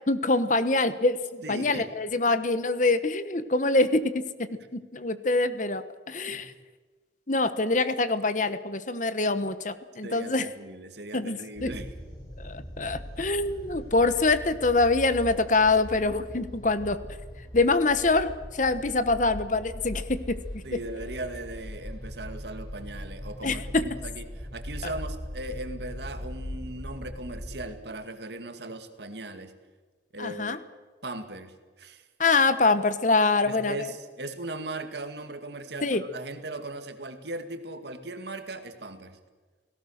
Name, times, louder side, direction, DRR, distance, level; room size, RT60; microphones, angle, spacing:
voice 1, 0.1-4.2 4.7-6.5 7.3-10.5 11.1-11.7 12.4-17.0 17.5-20.6 23.4-23.8 30.2-30.6 32.2-33.9 35.8-36.0, left 3 dB, 40° left, 12 dB, 1.2 m, -25 dB
voice 2, 1.4-1.8 6.3-6.5 10.0-11.9 20.6-24.3 24.5-29.5 30.1-30.6 31.0-32.1 33.4-39.2, right 2 dB, 60° right, 8 dB, 2.1 m, -38 dB
sound 1, 11.5-27.6, equal, 20° left, 5.3 m, -40 dB
29.5 x 18.0 x 6.6 m, 1.4 s
head